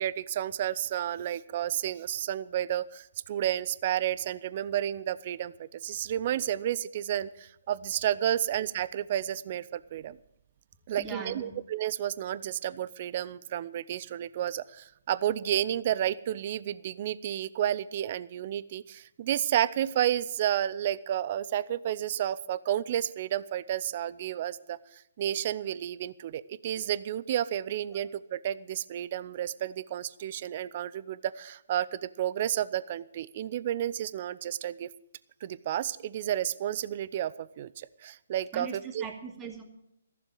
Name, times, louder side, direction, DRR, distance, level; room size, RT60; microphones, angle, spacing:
voice 1, 0.0-10.2 10.9-24.8 25.2-34.9 35.4-39.0, right 11 dB, 40° right, 17 dB, 0.6 m, -31 dB
voice 2, 11.0-11.6 27.9-28.0 38.5-39.6, right 4 dB, 15° right, 2 dB, 2.4 m, -40 dB
15.0 x 7.1 x 9.1 m, 0.80 s
hypercardioid pair, 145°, 0 cm